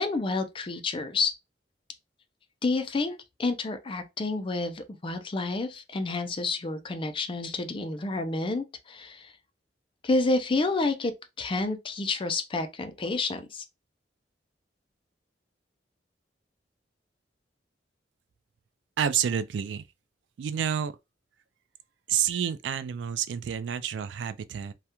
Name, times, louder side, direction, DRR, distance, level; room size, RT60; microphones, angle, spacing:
voice 1, 0.0-1.3 2.6-9.3 10.0-11.1 11.4-13.6, left 3 dB, 30° left, 0.4 m, -29 dB
voice 2, 19.0-19.8 20.4-20.9 22.1-24.7, right 8 dB, 75° right, 0.3 m, -29 dB
2.3 x 2.1 x 2.8 m
head